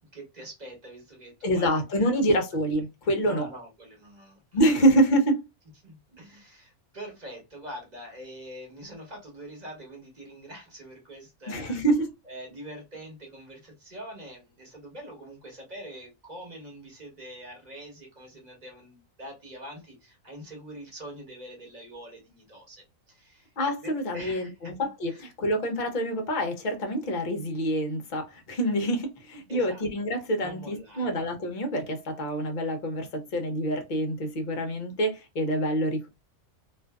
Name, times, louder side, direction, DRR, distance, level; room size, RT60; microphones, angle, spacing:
voice 1, 0.0-2.2 3.2-4.8 5.8-11.8 12.2-23.5 23.8-25.2 29.5-29.8 30.4-31.1, right 1 dB, 35° right, 1.0 m, -44 dB
voice 2, 1.4-3.5 4.5-5.4 11.5-12.1 23.6-36.1, right 1 dB, 50° left, 0.5 m, -26 dB
2.5 x 2.5 x 2.2 m
omnidirectional pair, 1.6 m